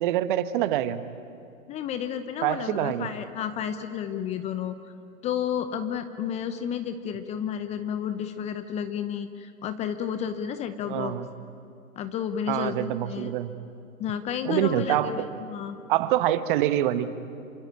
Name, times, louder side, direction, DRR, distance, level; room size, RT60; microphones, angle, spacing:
voice 1, 0.0-1.0 2.4-3.1 10.9-11.3 12.5-13.5 14.4-15.3 15.9-17.1, right 12 dB, 35° right, 12 dB, 1.3 m, -25 dB
voice 2, 1.7-4.7 5.2-11.1 12.0-13.3 14.0-15.8, left 8 dB, 15° left, 10 dB, 0.8 m, -31 dB
28.0 x 24.5 x 8.8 m, 2.7 s
hypercardioid pair, 130°, 42 cm